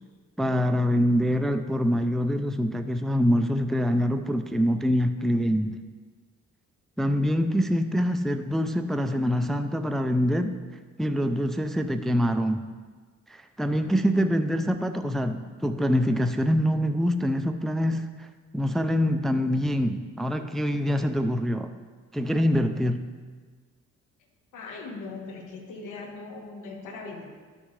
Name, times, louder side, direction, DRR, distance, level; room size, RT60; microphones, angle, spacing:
voice 1, 0.4-5.8 7.0-10.5 11.0-12.7 13.3-18.3 18.5-21.7 22.1-23.1, equal, ahead, 7 dB, 0.4 m, -25 dB
voice 2, 24.5-27.3, left 3 dB, 85° left, 1 dB, 1.4 m, -40 dB
12.0 x 6.1 x 3.3 m, 1.5 s
cardioid pair, 90°, 30 cm